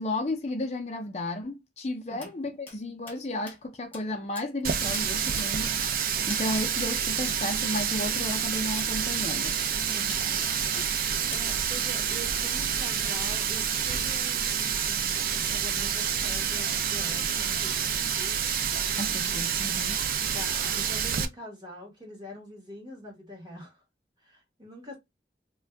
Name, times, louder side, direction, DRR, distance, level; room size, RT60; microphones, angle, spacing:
voice 1, 0.0-9.6 10.7-11.3 19.0-20.0, left 1 dB, 35° left, 0.4 m, -33 dB
sound 1, 2.2-2.3 2.7-2.8 3.1-3.2 3.5-3.6 3.9-4.1 4.4-4.6 4.9-5.1 5.4-5.5 5.8-6.0 6.3-6.4 6.8-6.9 7.3-7.4 7.7-7.9 8.2-8.4 8.8-8.9 9.3-9.5 10.1-10.3 10.7-10.9 11.3-11.5 11.8-12.0 12.3-12.4 12.7-13.2 13.5-14.0, left 2 dB, 10° left, 0.7 m, -44 dB
Water tap faucet, 4.6-21.3, right 7 dB, 50° right, 0.3 m, -28 dB
voice 2, 9.9-10.5 11.3-18.4 20.3-23.8 24.2-25.0, equal, 25° right, 1.2 m, -44 dB
2.6 x 2.2 x 3.3 m
head